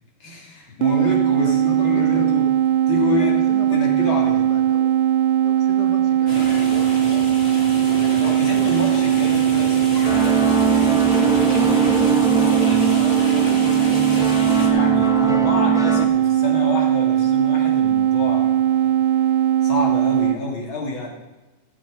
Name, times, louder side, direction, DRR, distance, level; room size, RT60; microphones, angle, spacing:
voice 1, 0.2-2.5 2.9-3.4 3.7-4.5 8.0-11.2 12.3-12.9 14.7-21.1, left 2 dB, 90° left, -1 dB, 3.5 m, -29 dB
sound 1, 0.8-20.4, right 11 dB, 85° right, 1.4 m, -19 dB
voice 2, 1.4-2.3 3.1-5.0 5.4-7.4 7.7-8.2 12.4-14.5 20.1-20.2, left 4 dB, 60° left, 5 dB, 1.6 m, -38 dB
sound 2, 6.3-14.7, equal, 30° left, 2.7 m, -31 dB
sound 3, 10.0-16.1, right 2 dB, 5° right, 0.4 m, -23 dB
15.5 x 7.8 x 5.4 m, 1.1 s
omnidirectional pair, 2.1 m